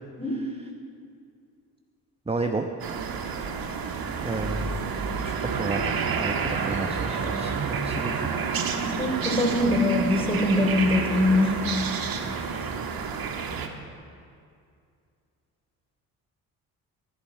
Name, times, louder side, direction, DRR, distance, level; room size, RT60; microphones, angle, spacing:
voice 1, 0.3-0.7 2.3-2.7 4.2-4.8 5.2-5.8 6.2-8.3, right 3 dB, 15° right, 4 dB, 1.1 m, -32 dB
sound 1, 2.8-13.7, right 5 dB, 50° right, 1.5 m, -29 dB
voice 2, 8.7-11.6, left 1 dB, 10° left, 1 dB, 3.6 m, -23 dB
15.0 x 11.5 x 4.8 m, 2.4 s
hypercardioid pair, 45°, 46 cm